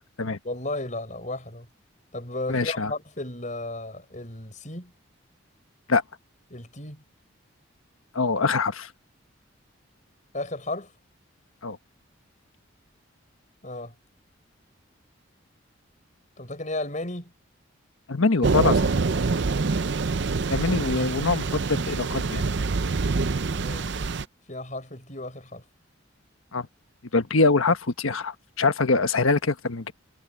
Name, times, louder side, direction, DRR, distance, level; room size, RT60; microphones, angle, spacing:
voice 1, 0.4-1.7 2.1-4.9 6.5-7.0 10.3-10.9 13.6-13.9 16.4-17.3 23.5-24.1 24.5-25.6, left 2 dB, 35° left, 6.5 m, -34 dB
voice 2, 2.5-2.9 5.9-6.0 8.1-8.9 11.6-11.8 18.1-18.9 20.5-22.4 26.5-26.7 27.1-29.9, left 3 dB, 85° left, 1.3 m, -24 dB
Thunder / Rain, 18.4-24.2, right 4 dB, 55° right, 0.6 m, -25 dB
head